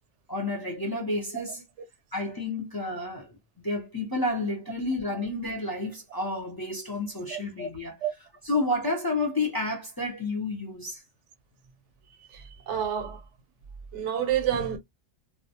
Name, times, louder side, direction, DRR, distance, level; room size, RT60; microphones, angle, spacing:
voice 1, 0.3-1.6 2.1-3.4 3.6-7.9 8.4-11.0, left 2 dB, 25° left, 0.5 m, -30 dB
voice 2, 12.3-13.2 13.9-14.8, right 9 dB, 85° right, 0.9 m, -28 dB
2.2 x 2.0 x 2.7 m
omnidirectional pair, 1.2 m